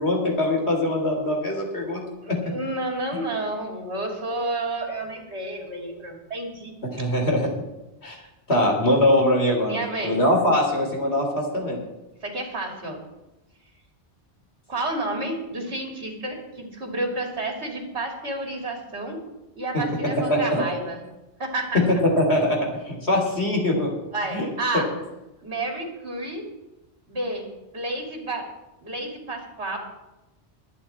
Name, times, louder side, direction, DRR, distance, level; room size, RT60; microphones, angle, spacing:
voice 1, 0.0-2.5 6.9-7.5 8.0-8.2 8.5-11.8 20.0-20.6 21.7-23.9 24.3-24.5 24.7-24.8, left 1 dB, 75° left, 0 dB, 3.7 m, -22 dB
voice 2, 2.2-6.7 9.7-10.2 12.2-13.0 14.7-19.2 19.5-21.0 21.4-21.8 24.1-24.9 25.4-26.5 27.1-28.5 28.8-29.8, right 2 dB, 80° right, 1 dB, 3.2 m, -30 dB
22.0 x 9.2 x 4.3 m, 0.99 s
omnidirectional pair, 1.1 m